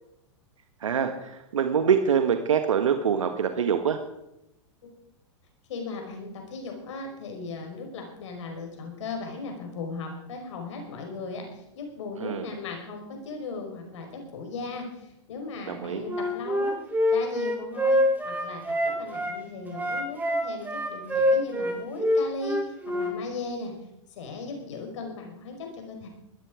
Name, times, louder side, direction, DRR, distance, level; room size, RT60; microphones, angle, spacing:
voice 1, 0.8-4.0 12.2-12.4 15.7-16.0, right 7 dB, 85° right, 7 dB, 1.6 m, -25 dB
voice 2, 5.7-16.7 17.1-23.7 24.1-26.1, left 3 dB, 70° left, 3 dB, 5.1 m, -37 dB
Wind instrument woodwind instrument, 16.1-19.3 19.7-23.1, equal, 10° right, 4.3 m, -25 dB
20.0 x 13.5 x 5.0 m, 0.88 s
hypercardioid pair, 110°, 16 cm